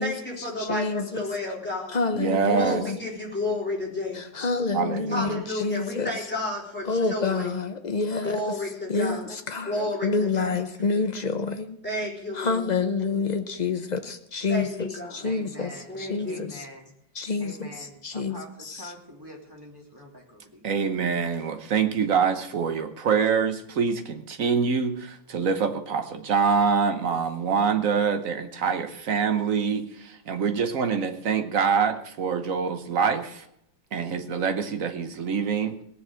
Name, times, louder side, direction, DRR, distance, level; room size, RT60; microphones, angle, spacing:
voice 1, 0.0-2.0 2.5-4.3 5.1-7.5 8.2-9.4 9.7-10.6 11.8-12.8 14.5-15.3 15.9-16.4, left 2 dB, 5° left, -4 dB, 3.9 m, -31 dB
voice 2, 0.6-1.2 1.9-3.0 4.1-6.1 6.9-8.6 8.9-11.8 12.3-15.7 16.0-16.5 17.2-17.7 18.0-18.4, left 4 dB, 70° left, 7 dB, 0.4 m, -28 dB
voice 3, 2.1-2.8 4.7-5.4 20.6-33.4 33.9-35.8, right 6 dB, 50° right, 8 dB, 1.3 m, -25 dB
voice 4, 15.2-16.9 17.4-20.8, equal, 10° right, -1 dB, 2.7 m, -45 dB
18.5 x 6.8 x 7.6 m, 0.76 s
omnidirectional pair, 2.0 m